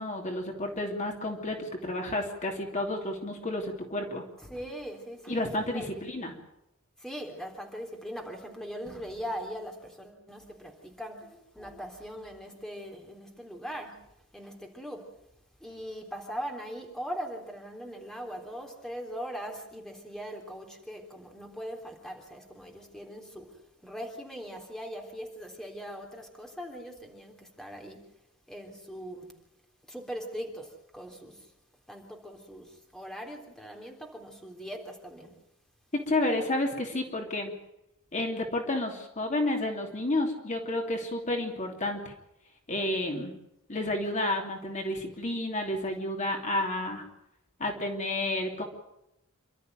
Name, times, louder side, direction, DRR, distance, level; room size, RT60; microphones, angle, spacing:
voice 1, 0.0-4.2 5.3-6.3 36.1-37.5 38.1-42.0 42.7-43.3 43.7-47.0 47.6-48.6, left 1 dB, 35° left, 2 dB, 3.0 m, -31 dB
voice 2, 4.4-6.2 7.0-14.0 14.3-15.0 15.6-23.5 23.8-28.0 28.5-29.3 29.9-31.4 31.9-35.3, equal, 5° left, 2 dB, 3.5 m, -40 dB
27.5 x 13.0 x 9.2 m, 0.85 s
head